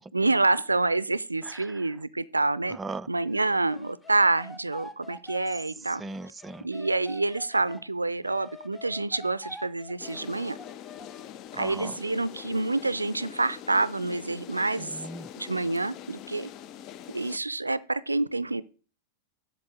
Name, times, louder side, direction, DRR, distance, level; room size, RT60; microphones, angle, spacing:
voice 1, 0.1-2.8 3.1-6.0 6.6-10.6 11.5-15.0 15.4-16.5 17.1-18.6, right 2 dB, 80° right, 0.4 m, -27 dB
voice 2, 2.7-3.1 6.0-6.7 11.5-12.0 14.8-15.3, right 3 dB, 15° right, 0.3 m, -38 dB
sound 1, 3.3-7.8 8.2-11.4, left 2 dB, 10° left, 1.0 m, -46 dB
sound 2, 10.0-17.4, left 11 dB, 40° left, 0.5 m, -44 dB
7.8 x 7.2 x 4.8 m
figure-of-eight pair, 90°, 0 cm